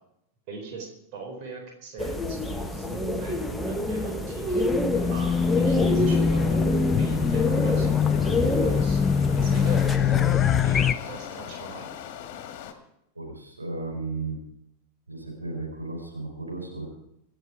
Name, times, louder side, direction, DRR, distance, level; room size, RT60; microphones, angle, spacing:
voice 1, 0.5-4.7 5.1-6.7 7.0-9.0 9.4-11.9, right 3 dB, 45° right, 2 dB, 4.2 m, -40 dB
sound 1, 2.0-10.0, left 1 dB, ahead, 1.5 m, -28 dB
Race car auto racing / Alarm, 4.7-10.9, left 6 dB, 20° left, 0.6 m, -23 dB
sound 2, 4.9-12.7, left 9 dB, 45° left, 1.9 m, -41 dB
voice 2, 13.1-14.4 15.1-16.9, right 3 dB, 80° right, 1 dB, 4.3 m, -34 dB
25.5 x 9.2 x 4.9 m, 0.80 s
figure-of-eight pair, 90°, 0 cm